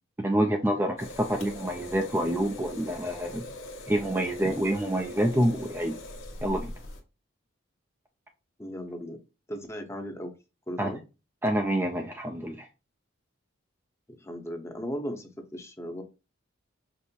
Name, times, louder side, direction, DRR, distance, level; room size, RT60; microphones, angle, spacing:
voice 1, 0.2-3.4 3.9-6.0 6.4-6.7 10.8-10.9 11.4-12.7, right 1 dB, 10° right, 0.4 m, -27 dB
sound 1, 1.0-7.0, left 1 dB, 70° left, 1.1 m, -42 dB
voice 2, 8.6-9.2 9.5-10.3 10.7-11.0 14.1-16.0, equal, 15° left, 0.8 m, -37 dB
5.2 x 2.1 x 4.3 m
head